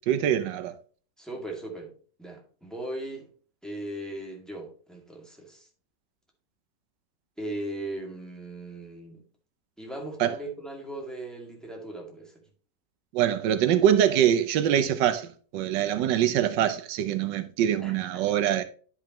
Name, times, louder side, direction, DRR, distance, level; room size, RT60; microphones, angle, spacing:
voice 1, 0.1-0.8 10.2-10.4 13.1-18.6, right 10 dB, 90° right, 1.4 m, -24 dB
voice 2, 1.2-1.9 2.2-3.3 3.6-5.7 7.4-9.2 9.8-12.4 17.8-18.4, right 1 dB, ahead, 2.2 m, -38 dB
10.0 x 5.6 x 3.1 m
omnidirectional pair, 1.9 m